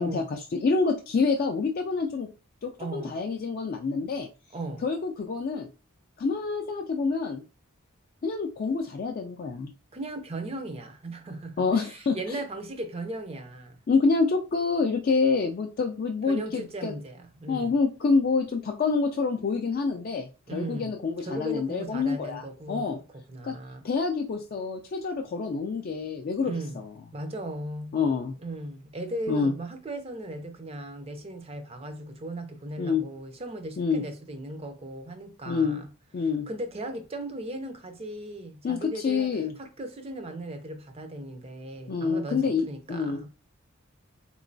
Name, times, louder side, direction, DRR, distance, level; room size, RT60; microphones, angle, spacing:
voice 1, 0.0-2.3 2.6-4.3 4.8-5.7 6.2-7.4 8.2-9.7 11.6-12.4 13.9-16.9 17.5-23.0 23.4-23.5 23.8-26.9 27.9-28.3 29.3-29.5 32.8-33.0 33.8-34.0 35.5-35.8 36.1-36.5 38.6-39.5 41.9-43.2, left 4 dB, 45° left, 0.3 m, -27 dB
voice 2, 2.8-3.1 4.5-4.8 9.9-13.8 16.3-17.8 20.5-20.9 21.2-23.8 26.4-26.8 27.1-28.0 28.4-35.9 36.5-43.3, right 1 dB, 25° right, 0.5 m, -37 dB
3.7 x 3.0 x 2.6 m
head